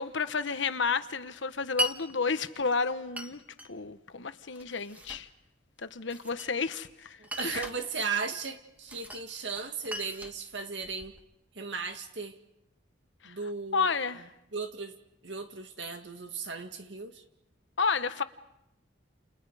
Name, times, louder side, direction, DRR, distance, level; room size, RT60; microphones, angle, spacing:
voice 1, 0.0-3.4 3.7-5.3 5.8-7.7 13.2-13.3 13.7-14.2 17.8-18.2, left 5 dB, 75° left, 11 dB, 1.1 m, -31 dB
Glass, 1.8-2.0 3.2-3.7 4.5-5.3 6.1-6.8 7.2-7.8 8.9-9.3 9.6-11.2, equal, 10° right, 1.3 m, -37 dB
voice 2, 7.2-11.2 11.5-12.4 13.2-13.9 14.5-15.0 15.2-17.2, right 4 dB, 65° right, 6 dB, 2.1 m, -36 dB
29.5 x 29.5 x 5.0 m, 0.83 s
head